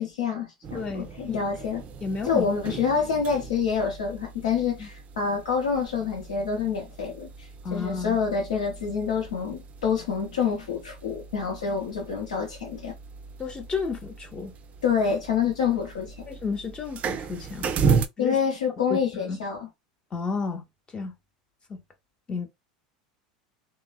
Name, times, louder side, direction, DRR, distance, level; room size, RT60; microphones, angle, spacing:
voice 1, 0.0-1.8 2.3-12.9 14.8-16.3 18.2-19.7, left 6 dB, 80° left, 0.8 m, -27 dB
sound 1, 0.6-18.1, right 5 dB, 35° right, 0.4 m, -35 dB
voice 2, 0.7-1.4 2.0-2.5 4.8-4.9 7.6-8.2 13.4-14.5 16.3-17.7 18.2-18.4 18.9-19.4 20.1-20.6 20.9-21.1 21.7-21.8 22.3-22.5, left 4 dB, 25° left, 0.6 m, -32 dB
3.1 x 2.0 x 2.2 m
hypercardioid pair, 90°, 4 cm